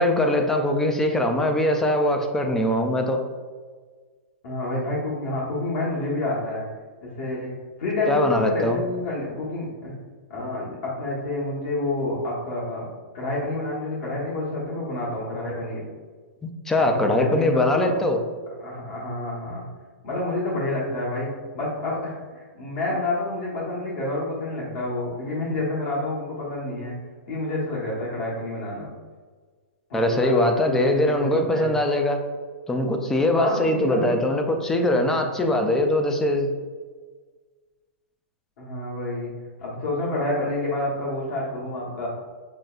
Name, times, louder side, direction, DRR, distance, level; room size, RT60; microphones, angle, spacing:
voice 1, 0.0-3.2 8.1-8.8 16.7-18.2 29.9-32.2 32.7-36.5, left 1 dB, 5° left, 4 dB, 0.3 m, -22 dB
voice 2, 4.4-6.6 7.0-9.9 10.3-12.9 13.1-15.8 16.8-17.9 18.6-19.6 20.0-21.3 21.5-27.0 27.3-28.9 29.9-31.7 33.3-34.1 38.6-42.1, left 2 dB, 60° left, -6 dB, 1.2 m, -28 dB
6.2 x 2.2 x 2.4 m, 1.5 s
hypercardioid pair, 150°, 7 cm